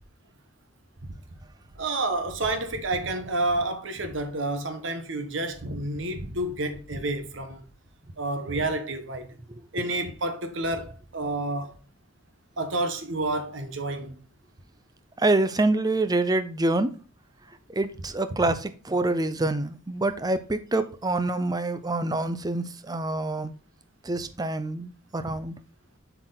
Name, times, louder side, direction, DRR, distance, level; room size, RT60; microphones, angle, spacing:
voice 1, 1.8-7.7 8.2-9.2 9.7-11.7 12.6-14.2 25.3-25.4, right 2 dB, 70° right, 1.2 m, -29 dB
voice 2, 9.5-9.9 15.2-16.9 17.7-23.5 24.0-25.6, right 2 dB, 20° right, 0.6 m, -26 dB
7.6 x 4.7 x 3.9 m
head